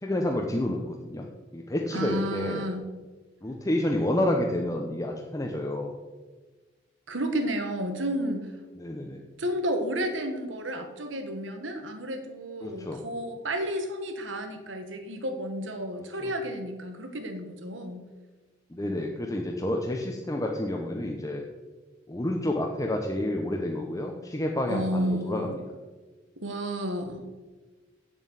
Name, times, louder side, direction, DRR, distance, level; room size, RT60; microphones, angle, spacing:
voice 1, 0.0-1.2 1.5-2.6 3.4-5.9 8.7-9.2 12.6-13.0 16.0-16.3 18.7-21.4 22.1-25.6, left 1 dB, 20° left, 1 dB, 0.9 m, -29 dB
voice 2, 1.9-2.8 7.1-8.5 9.4-18.0 24.6-25.6 26.4-27.2, equal, 85° right, 6 dB, 1.7 m, -31 dB
8.0 x 7.4 x 8.2 m, 1.3 s
head